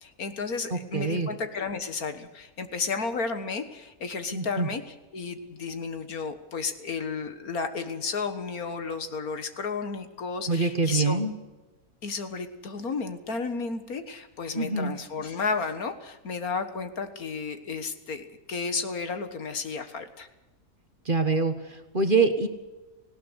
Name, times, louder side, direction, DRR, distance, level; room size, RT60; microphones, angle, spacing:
voice 1, 0.0-11.2 12.0-20.3, left 4 dB, 65° left, 9 dB, 2.0 m, -33 dB
voice 2, 0.7-1.3 4.3-4.7 10.5-11.3 14.5-14.9 21.0-22.5, right 3 dB, 35° right, 8 dB, 1.4 m, -25 dB
19.0 x 17.5 x 8.1 m, 1.1 s
omnidirectional pair, 1.7 m